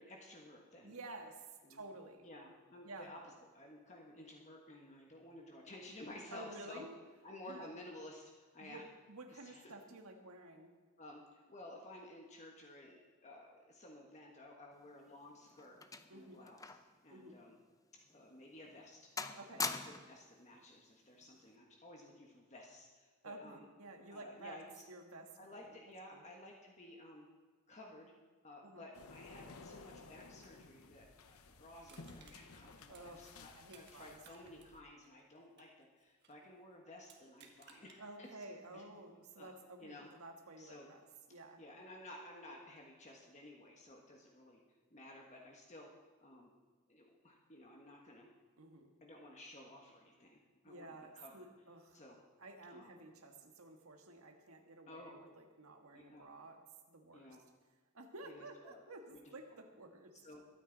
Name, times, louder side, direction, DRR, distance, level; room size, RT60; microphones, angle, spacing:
voice 1, 0.0-0.9 1.6-1.8 2.2-3.2 3.5-6.9 7.2-8.8 9.3-9.7 11.0-15.8 16.1-16.6 17.0-17.6 18.1-19.1 19.5-23.6 24.1-24.8 25.4-27.3 27.7-28.1 28.4-38.3 38.7-38.8 39.4-39.5 39.8-40.1 40.6-40.9 41.6-44.6 44.9-45.9 46.2-46.5 46.9-48.3 49.0-51.4 51.9-52.2 52.7-52.9 54.9-55.1 55.9-56.3 57.1-57.4 58.2-58.8 59.1-59.2 60.2-60.4, left 1 dB, 35° left, 0 dB, 1.4 m, -54 dB
voice 2, 0.8-2.3 2.8-3.1 6.3-6.9 7.5-7.7 8.6-10.7 16.1-16.4 17.1-17.4 19.4-19.7 23.2-24.6 24.9-25.8 26.1-26.2 28.6-28.8 32.9-34.6 38.0-41.0 41.3-41.6 48.6-48.9 50.7-52.0 52.4-57.4 57.9-60.2, right 2 dB, 80° right, 4 dB, 1.6 m, -52 dB
sound 1, 14.9-17.0 17.3-17.4 18.1-18.2 18.6-18.9 19.2-20.2 21.2-21.5, left 4 dB, 15° left, 0.5 m, -43 dB
sound 2, 28.9-34.8, left 3 dB, 80° left, 0.9 m, -56 dB
Crushing, 31.9-34.0 34.2-36.4 37.0-38.0 38.5-38.6, right 6 dB, 55° right, 1.5 m, -63 dB
22.0 x 9.3 x 4.0 m, 1.4 s
head